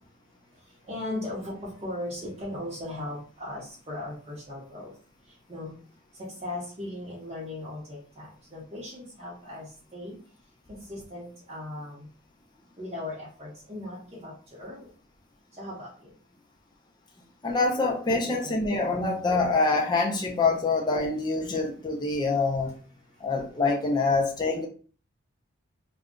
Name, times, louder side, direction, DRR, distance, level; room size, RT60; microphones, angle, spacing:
voice 1, 0.9-4.9 5.5-5.7 6.2-10.2 10.7-12.1 12.8-14.9 15.6-15.9 18.1-18.5, left 1 dB, 30° right, -8 dB, 0.8 m, -38 dB
voice 2, 17.4-22.8 23.2-24.7, left 3 dB, 20° left, -1 dB, 0.4 m, -25 dB
2.4 x 2.2 x 3.6 m, 0.41 s
head